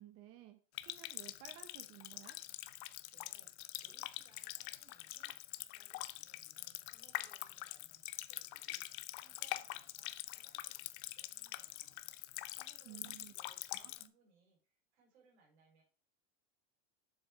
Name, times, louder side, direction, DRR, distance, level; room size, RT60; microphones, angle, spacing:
voice 1, 0.0-2.4 12.8-13.3 13.7-14.1, right 12 dB, 45° right, 6 dB, 0.9 m, -56 dB
Water tap faucet, 0.7-14.1, left 18 dB, 55° left, 0.6 m, -45 dB
voice 2, 3.1-8.8 9.1-12.0 12.5-15.8, right 4 dB, 85° right, 1 dB, 3.9 m, -71 dB
7.2 x 6.9 x 3.5 m, 0.37 s
supercardioid pair, 130°, 32 cm